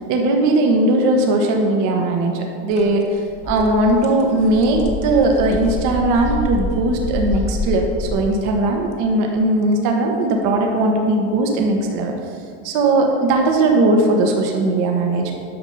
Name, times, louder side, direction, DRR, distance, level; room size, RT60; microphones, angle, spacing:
voice 1, 0.1-3.2 3.5-12.1 12.6-15.3, right 2 dB, 70° right, 2 dB, 1.4 m, -18 dB
sound 1, 2.7-2.8 3.2-8.2, left 2 dB, 25° left, 0.9 m, -27 dB
10.0 x 6.6 x 5.6 m, 2.3 s
cardioid pair, 170°, 30 cm